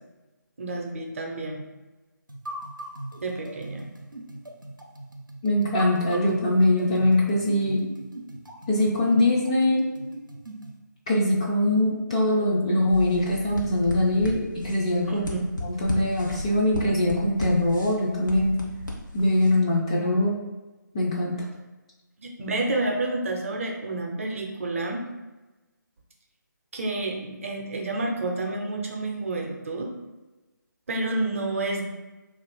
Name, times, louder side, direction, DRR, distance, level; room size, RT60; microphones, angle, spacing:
voice 1, 0.6-1.7 3.2-3.9 15.1-15.4 22.2-25.0 26.7-29.9 30.9-31.8, right 2 dB, 45° right, 1 dB, 0.6 m, -29 dB
sound 1, 2.3-10.8, right 1 dB, 90° right, 0.6 m, -40 dB
voice 2, 5.4-7.8 8.7-9.9 11.1-15.2 15.8-18.6 19.1-20.4 20.9-21.4, left 1 dB, 20° left, -4 dB, 0.3 m, -22 dB
sound 2, 12.9-19.5, left 2 dB, 75° left, 1.0 m, -35 dB
2.8 x 2.5 x 4.3 m, 1.1 s
figure-of-eight pair, 150°, 10 cm